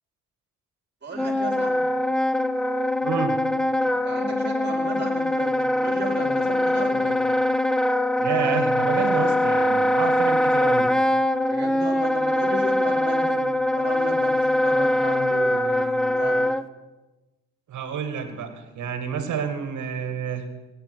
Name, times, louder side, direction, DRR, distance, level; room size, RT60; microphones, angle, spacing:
voice 1, 1.0-1.9 4.0-7.2 11.5-16.4 18.2-18.3, right 2 dB, 35° right, 3 dB, 4.1 m, -35 dB
Wind instrument woodwind instrument, 1.1-16.6, left 1 dB, ahead, 0.5 m, -22 dB
voice 2, 3.0-3.4 8.2-10.9 17.7-20.5, right 7 dB, 70° right, 8 dB, 2.0 m, -29 dB
16.5 x 10.5 x 6.3 m, 1.1 s
cardioid pair, 80°, 31 cm